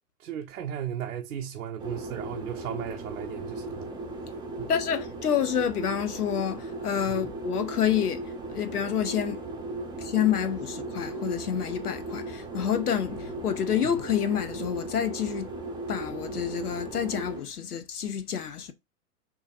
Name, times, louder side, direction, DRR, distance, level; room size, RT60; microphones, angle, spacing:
voice 1, 0.2-3.9 4.6-4.7 7.1-7.3, right 9 dB, 65° right, 0.9 m, -36 dB
sound 1, 1.8-17.4, right 2 dB, 10° right, 1.0 m, -37 dB
voice 2, 4.7-8.2 8.5-9.4 10.0-15.5 15.9-18.7, left 9 dB, 75° left, 1.0 m, -28 dB
5.9 x 3.0 x 2.5 m
figure-of-eight pair, 105°, 47 cm